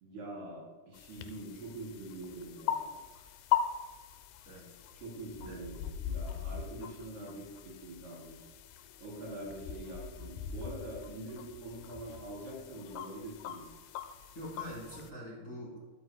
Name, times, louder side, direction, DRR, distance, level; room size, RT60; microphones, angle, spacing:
voice 1, 0.0-3.0 5.0-8.5 9.0-13.6, right 1 dB, 85° right, -4 dB, 5.5 m, -44 dB
sound 1, 0.9-15.1, left 9 dB, 80° left, 2.5 m, -40 dB
voice 2, 4.5-4.8 5.4-5.6 14.3-15.8, equal, 20° left, -6 dB, 2.9 m, -44 dB
13.0 x 12.5 x 2.2 m, 1.4 s
omnidirectional pair, 4.5 m